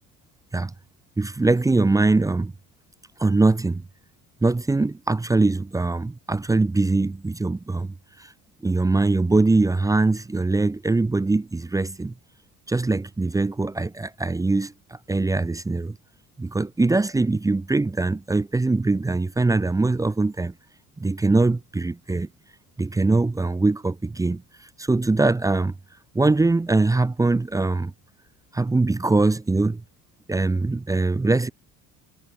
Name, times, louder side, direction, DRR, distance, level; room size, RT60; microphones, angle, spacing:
voice 1, 1.2-2.5 3.2-3.8 4.4-8.3 8.6-12.1 12.7-14.7 15.1-16.0 16.4-20.5 21.0-22.3 22.8-25.7 26.1-27.9 28.5-29.8 30.3-31.5, right 3 dB, 10° right, 0.9 m, -22 dB
cardioid pair, 135°, 32 cm